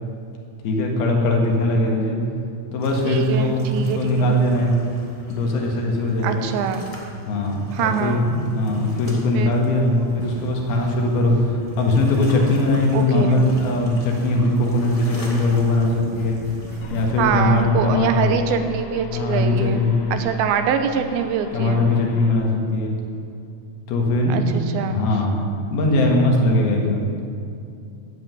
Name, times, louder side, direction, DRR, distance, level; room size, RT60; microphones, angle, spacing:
voice 1, 0.6-2.2 2.7-4.7 5.3-6.5 7.3-16.4 16.9-18.3 19.1-20.0 21.5-23.0 23.9-24.4 24.9-27.0, left 2 dB, 80° left, 0 dB, 3.6 m, -20 dB
sound 1, 2.8-17.6, equal, 25° left, 0.7 m, -42 dB
voice 2, 3.0-4.3 6.2-6.8 7.7-8.2 9.3-9.6 12.9-13.4 17.2-19.8 20.1-21.8 24.3-25.0, right 7 dB, 80° right, 8 dB, 2.7 m, -24 dB
sound 2, 10.2-11.0 11.2-12.1 12.4-13.8 14.0-17.1 17.4-17.5, right 1 dB, 5° right, 1.9 m, -39 dB
sound 3, 16.8-22.3, equal, 60° left, 2.1 m, -41 dB
12.0 x 8.1 x 9.2 m, 2.5 s
omnidirectional pair, 4.4 m